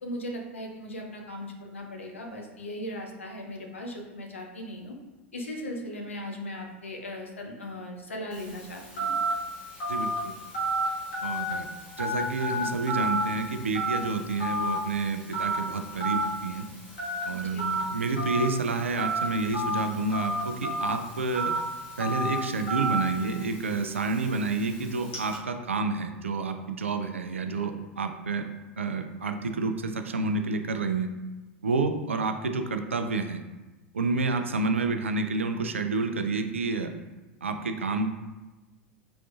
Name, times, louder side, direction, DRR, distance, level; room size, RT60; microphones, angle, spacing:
voice 1, 0.0-5.0 5.3-9.1 17.4-17.7, left 1 dB, 80° left, 2 dB, 0.7 m, -38 dB
Telephone, 8.3-25.4, right 1 dB, 60° left, 1.5 m, -32 dB
voice 2, 9.9-10.3 11.2-11.7 12.0-16.6 17.3-21.5 22.0-28.4 28.8-31.1 31.6-33.4 33.9-36.9 37.4-38.1, right 3 dB, 80° right, 6 dB, 0.4 m, -29 dB
5.0 x 3.6 x 2.3 m, 1.1 s
figure-of-eight pair, 85°, 7 cm